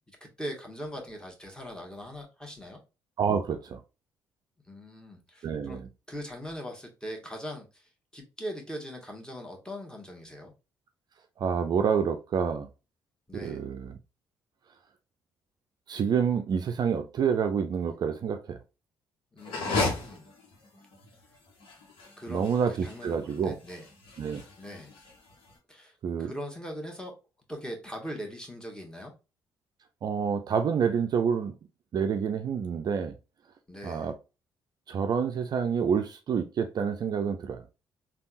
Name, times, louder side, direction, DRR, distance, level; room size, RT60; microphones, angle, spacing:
voice 1, 0.1-2.8 4.7-5.8 6.1-10.5 13.3-13.6 19.3-20.3 22.2-22.5 22.8-23.9 24.6-24.9 25.7-27.2 27.5-29.1 33.7-34.1, equal, 10° left, 1.3 m, -41 dB
voice 2, 3.2-3.8 5.4-5.9 11.4-12.7 13.4-14.0 15.9-18.6 22.3-23.6 24.2-24.4 26.0-26.3 30.0-31.5 31.9-33.1 33.8-34.1 34.9-37.6, right 7 dB, 50° right, 0.4 m, -28 dB
sound 1, 19.4-25.5, left 3 dB, 70° left, 1.0 m, -35 dB
3.4 x 2.3 x 2.5 m
hypercardioid pair, 50°, 9 cm